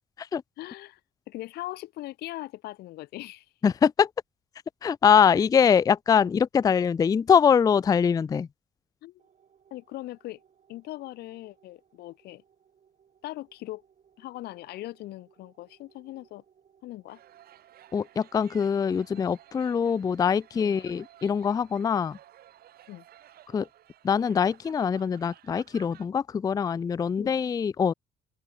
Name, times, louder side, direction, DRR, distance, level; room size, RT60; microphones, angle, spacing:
voice 1, 0.6-1.0 1.3-3.5 5.3-5.4 6.2-6.3 9.0-9.2 9.7-10.4 10.7-12.4 13.2-13.8 14.2-16.4 16.8-17.2 19.1-19.3 20.6-20.8 22.9-23.0 27.2-27.4, left 17 dB, 75° left, 0.7 m, -40 dB
voice 2, 3.6-4.1 4.8-8.5 17.9-22.2 23.5-23.7 24.0-27.9, left 7 dB, 20° left, 0.4 m, -23 dB
sound 1, 9.2-24.0, right 8 dB, 45° right, 7.5 m, -65 dB
sound 2, 17.1-26.0, right 12 dB, 65° right, 4.1 m, -55 dB
cardioid pair, 110°, 17 cm